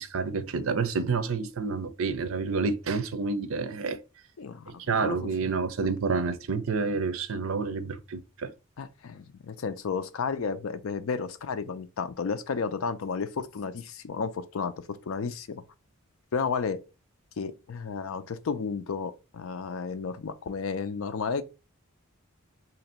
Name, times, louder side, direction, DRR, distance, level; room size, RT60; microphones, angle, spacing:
voice 1, 0.0-4.0 4.9-8.5, right 4 dB, 75° right, 0.5 m, -29 dB
voice 2, 4.4-5.3 8.8-15.6 16.3-16.8 17.4-21.4, left 5 dB, 70° left, 0.4 m, -32 dB
2.9 x 2.6 x 4.2 m
head